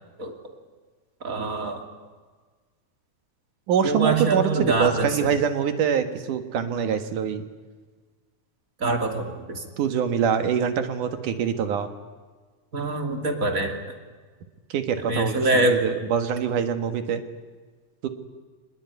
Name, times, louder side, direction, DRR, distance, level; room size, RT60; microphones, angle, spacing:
voice 1, 1.2-1.8 3.8-5.3 8.8-9.6 12.7-13.8 15.1-15.8, right 2 dB, 30° right, 4 dB, 3.0 m, -24 dB
voice 2, 3.7-7.4 9.8-11.9 14.7-17.2 18.0-18.1, right 7 dB, 85° right, 8 dB, 3.2 m, -24 dB
24.5 x 20.5 x 9.5 m, 1.4 s
omnidirectional pair, 3.5 m